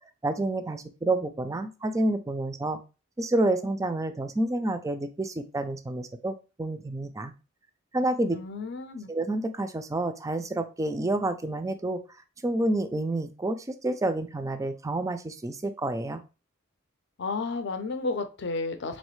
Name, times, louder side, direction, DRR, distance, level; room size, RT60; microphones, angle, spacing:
voice 1, 0.2-2.8 3.2-7.3 7.9-8.4 9.1-12.0 12.4-16.2, right 2 dB, 15° right, 9 dB, 0.4 m, -29 dB
voice 2, 8.3-9.1 17.2-19.0, left 3 dB, 60° left, 8 dB, 0.6 m, -32 dB
4.1 x 3.1 x 3.1 m, 0.31 s
head